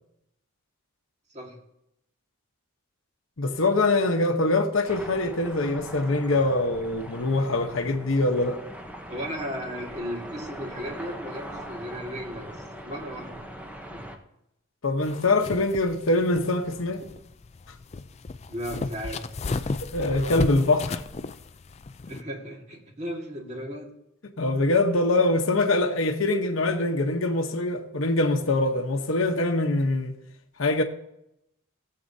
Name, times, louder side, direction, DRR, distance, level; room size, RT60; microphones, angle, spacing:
voice 1, 3.4-8.6 14.8-17.0 19.9-21.0 24.4-30.2 30.6-30.8, left 2 dB, 65° left, 0.9 m, -24 dB
sound 1, 4.9-14.2, equal, 5° right, 0.8 m, -41 dB
voice 2, 9.1-12.6 12.8-13.5 13.9-14.1 18.5-19.6 22.1-23.9, equal, 30° right, 1.8 m, -35 dB
sound 2, 15.0-22.2, left 3 dB, 30° left, 0.4 m, -34 dB
17.0 x 7.7 x 2.7 m
head